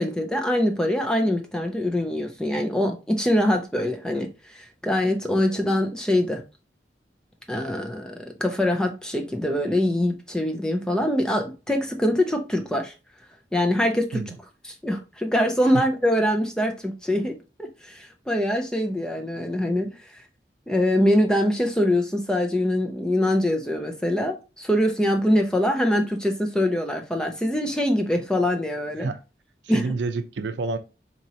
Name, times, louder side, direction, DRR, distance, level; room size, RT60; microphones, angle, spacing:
voice 1, 0.0-6.4 7.5-12.9 13.5-14.2 14.6-19.9 20.7-29.1 29.7-29.8, left 1 dB, 5° left, 0.4 m, -24 dB
voice 2, 29.6-30.8, right 3 dB, 85° right, 0.5 m, -28 dB
4.3 x 2.9 x 2.7 m
head